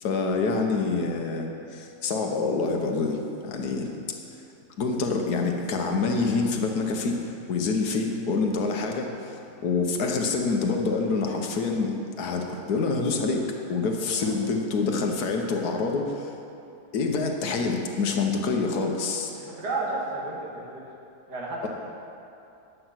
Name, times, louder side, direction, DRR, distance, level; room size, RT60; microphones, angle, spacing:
voice 1, 0.0-3.2 3.4-4.1 4.8-7.1 7.5-9.1 9.6-16.2 16.9-19.3 21.6-21.7, left 4 dB, 75° left, 2 dB, 1.5 m, -26 dB
voice 2, 19.3-20.6 21.3-21.7, right 2 dB, 80° right, -4 dB, 2.4 m, -32 dB
10.0 x 7.9 x 5.8 m, 2.7 s
omnidirectional pair, 1.7 m